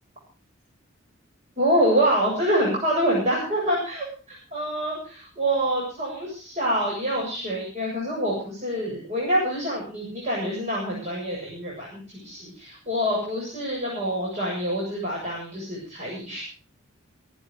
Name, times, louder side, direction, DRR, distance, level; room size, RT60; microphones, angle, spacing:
voice 1, 1.6-16.4, right 1 dB, 35° right, -3 dB, 7.7 m, -26 dB
24.0 x 9.8 x 5.0 m, 0.38 s
head